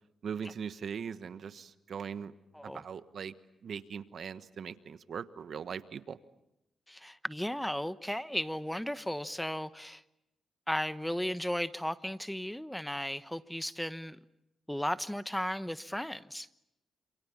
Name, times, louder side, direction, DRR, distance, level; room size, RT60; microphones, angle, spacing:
voice 1, 0.2-2.3 2.6-3.3 3.6-6.2, right 7 dB, 65° right, 13 dB, 1.3 m, -40 dB
voice 2, 6.9-10.0 10.7-14.2 14.7-16.5, equal, 5° left, 14 dB, 1.0 m, -35 dB
27.5 x 27.5 x 7.2 m, 0.86 s
cardioid pair, 70°, 0 cm